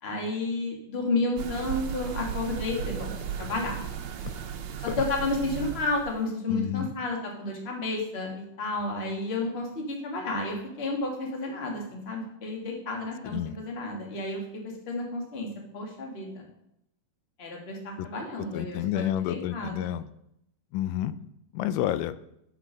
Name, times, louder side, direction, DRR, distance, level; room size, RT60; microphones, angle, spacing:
voice 1, 0.0-3.1 3.4-3.7 4.8-14.4 14.9-15.5 15.7-16.4 17.4-20.0, left 2 dB, 30° left, 0 dB, 1.2 m, -31 dB
sound 1, 1.4-6.2, right 8 dB, 70° right, 1.9 m, -35 dB
voice 2, 6.5-7.0 13.2-13.6 18.0-18.1 18.5-20.1 20.7-21.2 21.5-22.2, left 12 dB, 85° left, 14 dB, 2.1 m, -30 dB
7.7 x 6.0 x 6.0 m, 0.78 s
omnidirectional pair, 3.8 m